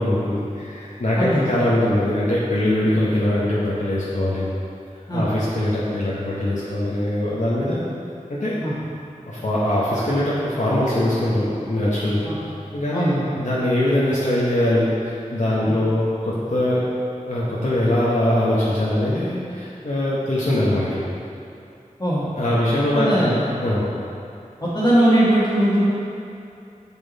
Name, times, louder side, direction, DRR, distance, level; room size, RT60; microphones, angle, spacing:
voice 1, 0.0-4.5 5.1-7.8 8.3-8.6 9.3-12.3 12.7-16.8 17.3-21.0 22.4-23.9, left 1 dB, 65° left, -8 dB, 1.1 m, -22 dB
voice 2, 1.2-1.6 5.1-5.3 8.6-8.7 12.2-12.4 12.9-13.3 15.6-15.8 22.0-22.3 22.9-23.5 24.6-25.8, right 1 dB, 30° left, -11 dB, 1.5 m, -20 dB
7.1 x 6.1 x 4.1 m, 2.7 s
wide cardioid pair, 50°, 14 cm